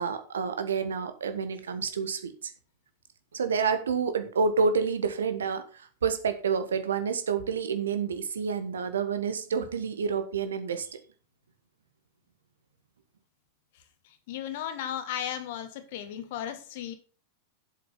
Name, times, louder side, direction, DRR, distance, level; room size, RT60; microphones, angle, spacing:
voice 1, 0.0-2.5 3.3-11.0, right 5 dB, 65° right, 10 dB, 1.4 m, -29 dB
voice 2, 14.3-16.9, left 10 dB, 50° left, 10 dB, 1.6 m, -35 dB
7.7 x 7.6 x 5.5 m, 0.37 s
figure-of-eight pair, 90°, 0 cm